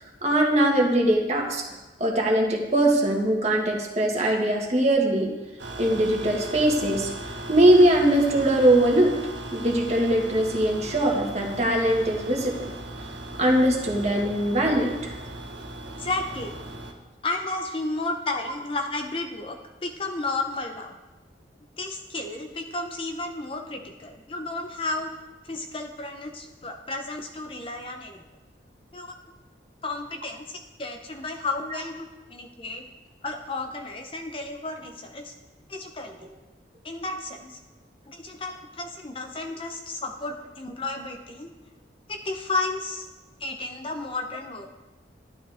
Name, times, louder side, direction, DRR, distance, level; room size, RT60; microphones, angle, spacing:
voice 1, 0.2-1.6 2.0-5.3 5.8-7.1 7.5-9.1 9.5-12.7 13.4-15.1, right 1 dB, 35° right, 0 dB, 1.8 m, -21 dB
sound 1, 5.6-16.9, right 1 dB, 85° right, 1.6 m, -38 dB
voice 2, 16.0-16.6 17.2-20.9 21.8-25.1 25.4-28.2 28.9-29.1 29.8-32.8 33.2-35.3 35.7-36.3 36.8-37.6 38.1-41.5 42.1-43.1 43.4-44.7, left 2 dB, 30° left, 3 dB, 0.8 m, -32 dB
12.5 x 12.0 x 3.5 m, 1.1 s
head